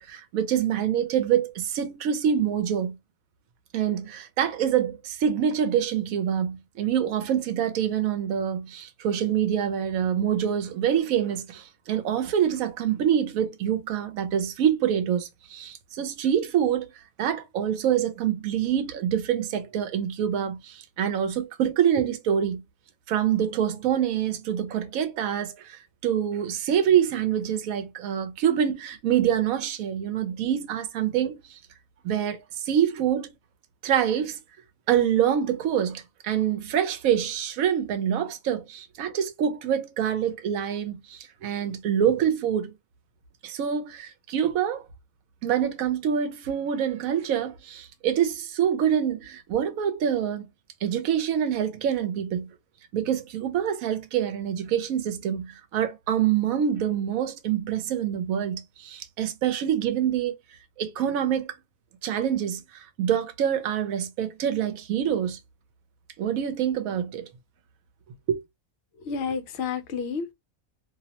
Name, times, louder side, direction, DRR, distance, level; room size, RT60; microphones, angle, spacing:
voice 1, 0.0-3.0 3.7-16.9 17.2-22.6 23.1-31.6 32.0-33.3 33.8-34.4 34.9-42.7 43.4-44.8 45.4-50.5 50.8-52.5 52.9-60.4 60.8-61.6 62.0-65.4 66.2-67.3 68.3-68.4, right 9 dB, 85° right, 1.0 m, -26 dB
voice 2, 68.9-70.3, left 5 dB, 65° left, 0.7 m, -30 dB
2.6 x 2.0 x 2.8 m
omnidirectional pair, 1.4 m